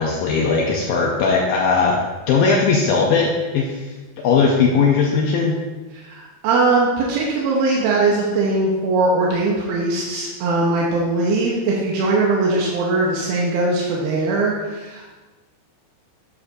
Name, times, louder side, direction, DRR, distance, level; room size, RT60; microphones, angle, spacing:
voice 1, 0.0-2.0 2.3-3.9 4.2-5.6, left 5 dB, 80° left, -2 dB, 2.1 m, -18 dB
voice 2, 5.9-15.2, right 3 dB, 75° right, -4 dB, 2.6 m, -20 dB
9.6 x 6.5 x 2.6 m, 1.2 s
omnidirectional pair, 4.7 m